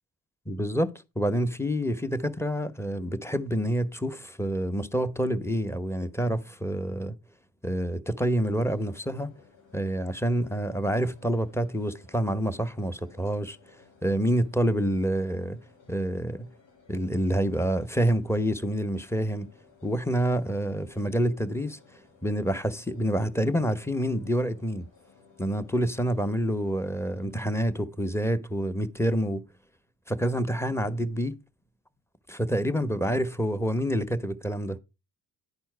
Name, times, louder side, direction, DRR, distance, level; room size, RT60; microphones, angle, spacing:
voice 1, 0.5-0.9 1.2-7.1 7.6-9.3 9.7-13.6 14.0-15.6 15.9-16.5 16.9-19.5 19.8-24.9 25.4-29.4 30.1-31.4 32.3-34.8, equal, 5° left, 1.1 m, -27 dB
sound 1, 8.4-27.4, left 5 dB, 90° left, 4.5 m, -59 dB
10.5 x 4.4 x 4.6 m
supercardioid pair, 60°, 43 cm